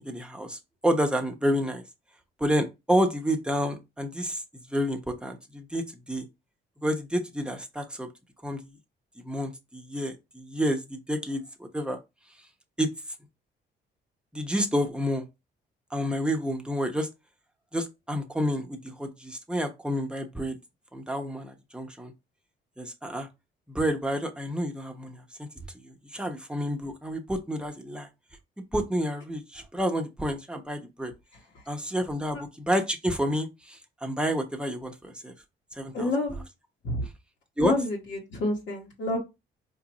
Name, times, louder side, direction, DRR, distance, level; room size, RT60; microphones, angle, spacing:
voice 1, 0.0-1.8 2.4-4.4 4.7-6.3 6.8-8.1 8.4-8.7 9.2-12.0 12.8-12.9 14.3-15.3 15.9-17.1 17.7-20.6 20.9-22.1 22.8-23.3 23.7-25.5 25.8-28.1 28.7-31.1 31.7-35.3 35.8-36.1 37.6-37.7, equal, 5° right, 0.8 m, -29 dB
voice 2, 35.9-36.4 36.8-37.1 37.6-39.2, left 2 dB, 70° left, 1.2 m, -29 dB
4.7 x 2.5 x 3.0 m
cardioid pair, 90°, 20 cm